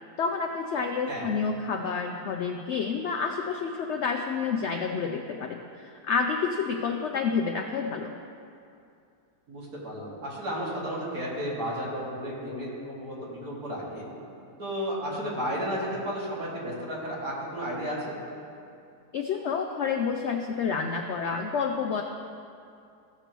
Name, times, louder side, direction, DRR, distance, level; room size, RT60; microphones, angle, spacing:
voice 1, 0.2-8.1 19.1-22.0, left 5 dB, 80° left, 3 dB, 0.6 m, -29 dB
voice 2, 9.5-14.0 14.6-18.2, equal, 65° right, -7 dB, 2.7 m, -33 dB
15.0 x 6.7 x 3.0 m, 2.5 s
omnidirectional pair, 1.7 m